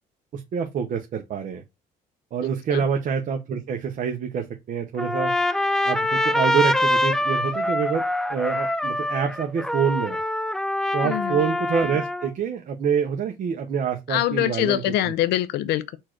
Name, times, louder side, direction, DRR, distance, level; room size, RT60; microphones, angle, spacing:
voice 1, 0.3-1.6 2.3-5.3 5.8-8.0 8.3-10.2 10.9-14.8, right 7 dB, 50° right, 0.7 m, -26 dB
Trumpet, 5.0-12.3, left 1 dB, 5° left, 0.3 m, -24 dB
voice 2, 11.0-11.4 14.1-16.0, left 13 dB, 80° left, 0.5 m, -24 dB
4.4 x 2.5 x 4.4 m
cardioid pair, 110°, 17 cm